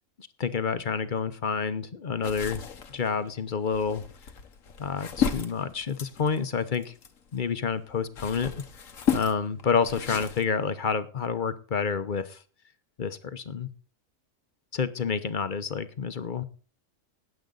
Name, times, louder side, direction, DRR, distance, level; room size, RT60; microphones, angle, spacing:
voice 1, 0.4-2.6 2.9-4.0 4.8-6.9 7.3-8.5 9.1-12.4 13.0-13.7 14.7-16.4, left 6 dB, 40° left, 12 dB, 0.9 m, -29 dB
sound 1, 2.2-7.4 7.9-10.4, left 7 dB, 80° left, 1.6 m, -33 dB
19.0 x 7.8 x 3.9 m, 0.38 s
omnidirectional pair, 1.4 m